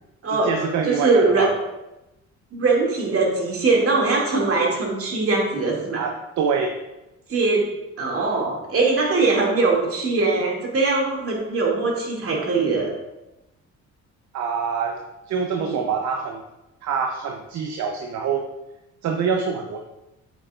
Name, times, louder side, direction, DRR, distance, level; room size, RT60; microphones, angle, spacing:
voice 1, 0.3-1.5 5.9-6.8 14.3-15.0 15.3-16.4 16.8-18.5 19.0-19.8, right 6 dB, 70° right, 3 dB, 0.8 m, -25 dB
voice 2, 0.8-1.5 2.5-6.0 7.3-7.6 8.0-12.9 15.6-15.8, right 3 dB, 50° right, -2 dB, 2.4 m, -21 dB
8.1 x 8.0 x 2.5 m, 0.95 s
cardioid pair, 90°, 30 cm